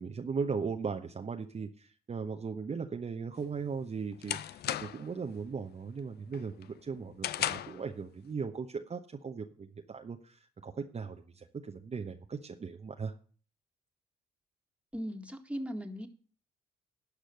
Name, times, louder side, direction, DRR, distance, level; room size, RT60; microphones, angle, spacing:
voice 1, 0.0-13.1, right 5 dB, 35° right, 4 dB, 0.9 m, -38 dB
sound 1, 3.4-5.2 5.6-5.9 6.3-7.9, left 11 dB, 60° left, 0.6 m, -36 dB
voice 2, 14.9-16.1, equal, 5° right, 5 dB, 1.9 m, -38 dB
12.0 x 5.0 x 7.7 m, 0.42 s
hypercardioid pair, 50°, 18 cm